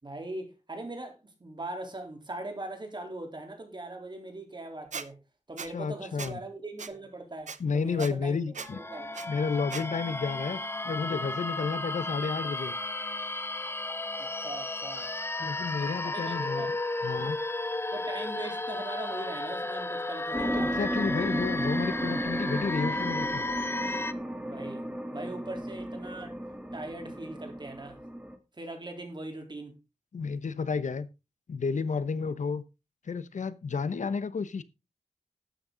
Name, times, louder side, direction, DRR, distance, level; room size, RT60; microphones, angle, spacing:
voice 1, 0.0-5.2 5.5-9.3 14.2-15.1 16.0-16.7 17.9-20.8 24.5-24.9 25.1-26.4 26.7-28.0 28.6-29.8, right 2 dB, 40° right, 3.6 m, -40 dB
Squeak, 4.9-5.1 5.6-5.7 6.2-6.3 6.8-6.9 7.5-7.6 8.0-8.1 8.5-8.7 9.1-9.3 9.7-9.8, right 5 dB, 80° right, 0.9 m, -38 dB
voice 2, 5.7-6.4 7.6-8.8 9.3-10.6 10.8-12.8 15.4-16.7 17.0-17.4 20.3-23.5 30.1-31.1 31.5-32.6 33.1-34.6, left 5 dB, 85° left, 0.9 m, -31 dB
sound 1, 8.6-24.1, left 2 dB, 20° left, 0.6 m, -34 dB
sound 2, 20.3-28.4, right 1 dB, 10° right, 2.0 m, -34 dB
12.5 x 9.0 x 3.9 m
wide cardioid pair, 100°, 12 cm